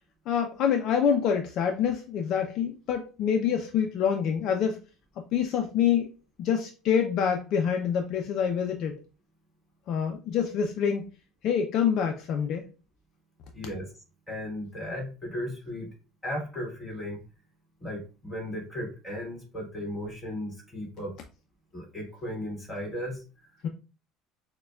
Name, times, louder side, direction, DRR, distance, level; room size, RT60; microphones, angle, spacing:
voice 1, 0.3-4.8 5.2-6.1 6.4-9.0 9.9-11.1 11.4-12.7 23.6-23.7, left 8 dB, 50° left, 4 dB, 0.4 m, -26 dB
voice 2, 13.5-15.9 16.2-17.2 17.8-21.1 21.7-23.2, left 1 dB, 10° left, -2 dB, 1.7 m, -36 dB
6.4 x 2.2 x 2.3 m, 0.32 s
cardioid pair, 150°, 0 cm